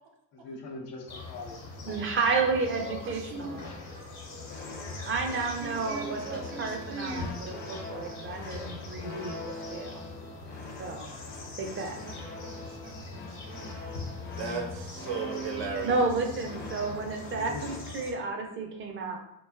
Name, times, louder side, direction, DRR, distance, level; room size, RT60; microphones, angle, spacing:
voice 1, 0.3-2.2 17.3-17.7, left 3 dB, 85° left, 0 dB, 0.7 m, -42 dB
sound 1, 1.1-18.1, left 3 dB, 70° left, 1.0 m, -42 dB
voice 2, 1.9-3.8 5.1-9.4 9.7-10.0 10.8-11.1 11.6-12.0 15.8-19.2, right 4 dB, 30° right, 3 dB, 0.4 m, -31 dB
voice 3, 2.8-3.6 5.6-7.3 12.0-12.1 12.4-13.7 14.3-16.1, right 4 dB, 75° right, 2 dB, 0.7 m, -38 dB
sound 2, 4.4-17.8, left 1 dB, 25° left, 0.5 m, -43 dB
2.4 x 2.2 x 2.3 m, 0.81 s
supercardioid pair, 75°, 44 cm